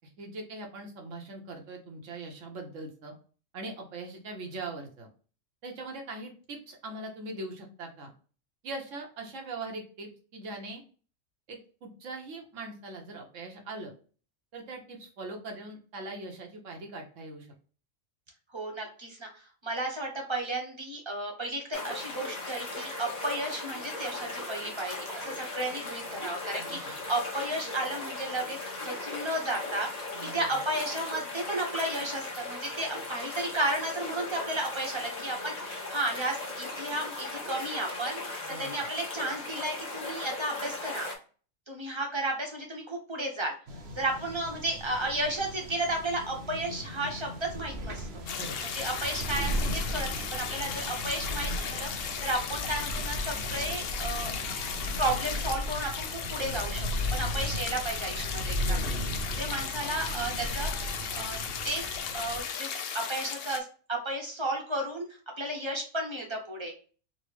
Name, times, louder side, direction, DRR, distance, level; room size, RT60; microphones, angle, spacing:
voice 1, 0.0-3.1 3.5-5.1 5.6-8.1 8.6-10.8 11.5-13.9 14.5-17.5 26.6-26.8 30.1-30.5 38.4-38.7 44.2-44.4 48.2-48.6 58.5-59.0, right 2 dB, 75° right, 2 dB, 1.2 m, -41 dB
voice 2, 18.5-38.2 38.6-41.1 41.7-43.5 44.0-48.2 48.7-54.3 55.0-58.8 59.3-60.8 61.1-61.4 61.6-62.8 63.1-65.1 65.4-66.7, right 1 dB, 25° right, 1 dB, 0.7 m, -33 dB
sound 1, 21.7-41.1, left 2 dB, 35° left, 1.0 m, -38 dB
sound 2, 43.7-62.4, equal, 60° right, 0.9 m, -36 dB
sound 3, 48.3-63.6, left 7 dB, 65° left, 0.6 m, -36 dB
4.0 x 2.0 x 3.1 m, 0.39 s
omnidirectional pair, 1.3 m